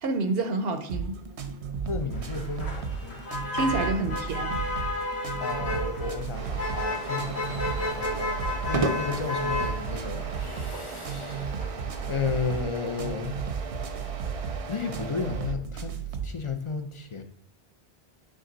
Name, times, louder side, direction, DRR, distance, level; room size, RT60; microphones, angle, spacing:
voice 1, 0.0-1.2 3.5-4.6, right 3 dB, 65° right, 0.8 m, -28 dB
sound 1, 0.9-16.4, right 6 dB, 85° right, 1.1 m, -34 dB
voice 2, 1.8-3.2 3.8-4.0 5.0-5.1 5.4-11.5 12.1-13.4 14.7-16.0 16.2-17.2, left 5 dB, 40° left, 0.5 m, -33 dB
Motor vehicle (road), 2.1-12.6, left 2 dB, 75° left, 2.1 m, -33 dB
sound 2, 6.3-15.6, right 4 dB, 45° right, 0.5 m, -37 dB
8.9 x 3.6 x 3.9 m
omnidirectional pair, 1.1 m